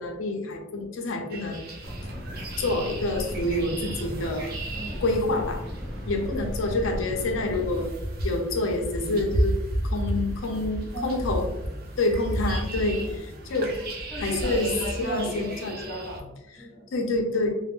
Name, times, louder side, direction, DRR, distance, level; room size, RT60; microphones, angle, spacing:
voice 1, 0.0-1.7 2.6-4.5 5.0-5.6 6.1-7.9 8.2-9.6 9.8-11.5 12.0-13.8 14.2-14.7 15.0-16.0 16.9-17.5, left 2 dB, 75° left, 3 dB, 0.5 m, -27 dB
sound 1, 1.3-16.2, right 1 dB, 50° right, 0.6 m, -33 dB
sound 2, 1.8-7.9, equal, 10° right, 1.3 m, -35 dB
voice 2, 4.7-5.0 6.3-6.5 10.9-11.8 13.0-13.3 14.1-16.9, right 1 dB, 20° left, -4 dB, 1.1 m, -36 dB
2.4 x 2.0 x 3.4 m, 0.92 s
head